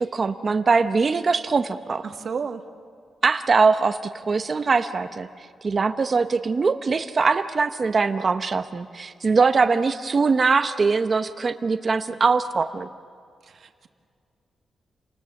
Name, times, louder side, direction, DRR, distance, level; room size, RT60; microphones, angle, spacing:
voice 1, 0.0-2.0 3.2-5.3 5.6-12.9, right 4 dB, 35° right, 9 dB, 0.8 m, -22 dB
voice 2, 2.0-2.6 13.4-13.9, right 6 dB, 55° right, 7 dB, 1.4 m, -32 dB
29.0 x 19.5 x 7.1 m, 2.2 s
wide cardioid pair, 145°, 0 cm